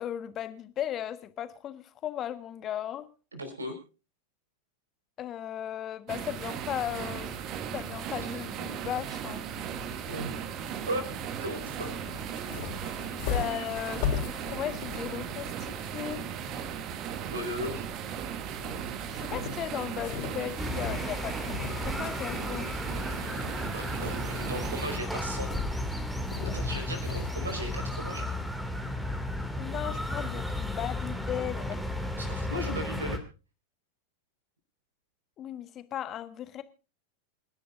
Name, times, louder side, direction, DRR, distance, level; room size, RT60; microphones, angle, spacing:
voice 1, 0.0-3.1 5.2-7.3 7.7-9.4 13.1-16.2 19.1-22.7 29.6-31.8 35.4-36.6, left 11 dB, 30° left, 12 dB, 1.4 m, -36 dB
voice 2, 3.3-3.8 10.1-10.3 10.9-11.0 11.4-12.0 17.2-17.8 23.7-25.5 26.5-28.3 32.2-33.2, equal, 75° right, 7 dB, 4.9 m, -36 dB
sound 1, 6.1-25.0, right 8 dB, 35° right, 1.5 m, -37 dB
sound 2, 8.9-27.4, left 7 dB, 45° left, 4.3 m, -40 dB
sound 3, 20.6-33.2, left 1 dB, ahead, 2.4 m, -34 dB
28.0 x 11.0 x 2.6 m, 0.34 s
figure-of-eight pair, 90°, 0 cm